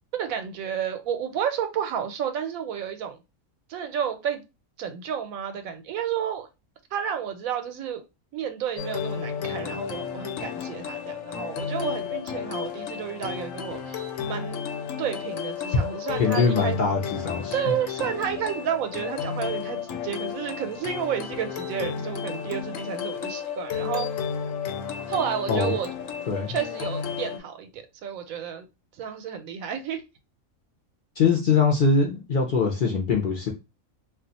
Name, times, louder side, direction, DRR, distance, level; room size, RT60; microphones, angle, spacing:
voice 1, 0.1-3.2 3.7-4.4 4.8-6.5 6.9-8.0 8.3-14.6 15.0-16.8 17.5-24.1 25.1-25.9 26.5-28.7 29.0-30.0, right 8 dB, 90° right, 1.0 m, -31 dB
sound 1, 8.8-27.4, left 7 dB, 75° left, 1.0 m, -32 dB
voice 2, 16.1-17.7 25.5-25.8 26.3-26.6 31.2-33.5, left 5 dB, 55° left, 0.6 m, -23 dB
2.4 x 2.3 x 3.9 m
omnidirectional pair, 1.4 m